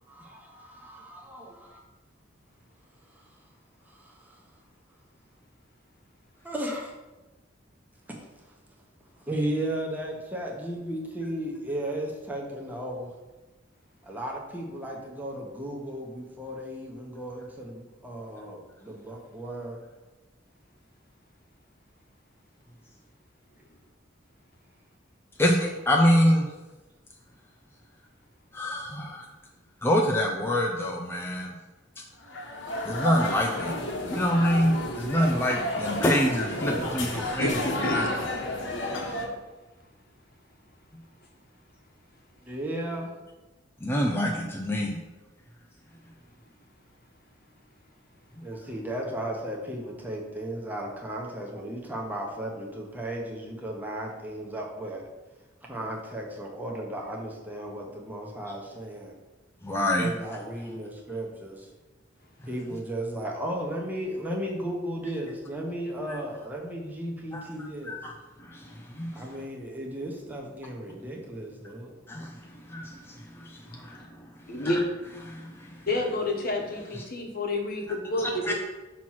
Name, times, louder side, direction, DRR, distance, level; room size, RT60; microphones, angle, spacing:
voice 1, 0.1-1.8 3.9-4.4 6.4-6.9 8.1-8.6 9.2-13.1 14.0-19.8 42.4-43.1 48.4-55.0 55.6-59.1 60.0-61.7 62.4-68.0 69.1-71.9, right 1 dB, 10° right, -2 dB, 1.0 m, -35 dB
voice 2, 25.4-26.5 28.5-29.2 29.8-31.5 32.9-33.7 34.1-37.6 37.9-38.1 43.8-45.0 59.6-60.1 67.3-67.4 67.9-68.1 68.5-68.6 69.0-69.1 72.1-72.3 72.7-72.9 73.8-74.0 74.6-74.7 75.3-75.4 78.5-78.6, equal, 10° left, 0 dB, 0.4 m, -25 dB
sound 1, 32.2-39.3, left 2 dB, 75° left, 1.1 m, -31 dB
voice 3, 37.1-38.3 74.5-74.9 75.9-78.5, left 2 dB, 50° left, 1 dB, 1.1 m, -29 dB
5.9 x 3.1 x 5.7 m, 1.1 s
head